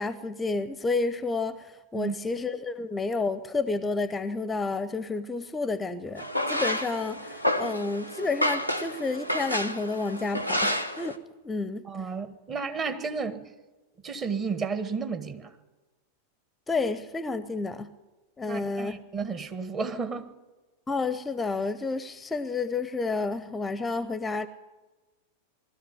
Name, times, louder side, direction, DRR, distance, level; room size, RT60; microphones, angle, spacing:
voice 1, 0.0-11.9 16.7-17.9 18.4-19.0 20.9-24.5, left 3 dB, 15° left, 0.7 m, -30 dB
sound 1, 6.2-11.2, equal, 90° right, 1.1 m, -30 dB
voice 2, 11.8-13.5 14.0-15.6 18.5-20.4, right 5 dB, 25° right, 1.5 m, -32 dB
20.0 x 13.0 x 10.0 m
figure-of-eight pair, 90°, 0 cm